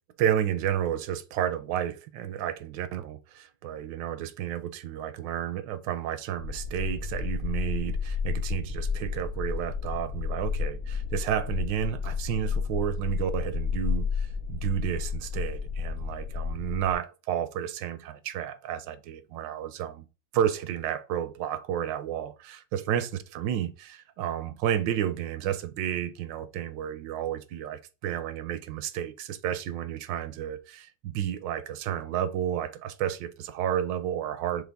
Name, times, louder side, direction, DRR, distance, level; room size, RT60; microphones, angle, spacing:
voice 1, 0.2-20.0 20.3-34.6, right 10 dB, 85° right, 1.3 m, -31 dB
sound 1, 6.4-17.0, left 6 dB, 50° left, 1.7 m, -31 dB
6.7 x 2.3 x 3.4 m
omnidirectional pair, 2.0 m